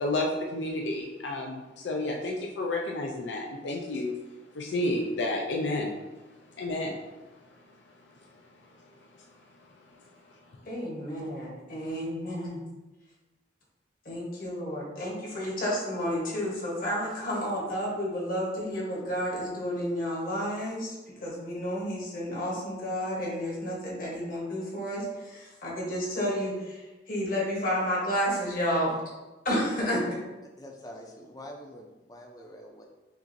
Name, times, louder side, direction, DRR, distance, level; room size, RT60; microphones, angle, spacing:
voice 1, 0.0-4.1 4.5-5.9 6.3-7.0 7.6-7.7 8.2-8.3 8.8-8.9 9.8-10.6, left 2 dB, 80° left, 0 dB, 0.5 m, -31 dB
voice 2, 10.6-12.6 14.0-21.0 21.2-28.9 29.4-30.0, equal, 50° left, -3 dB, 1.2 m, -31 dB
voice 3, 30.6-32.9, equal, 20° left, 1 dB, 0.5 m, -46 dB
5.9 x 2.5 x 2.7 m, 1.1 s
head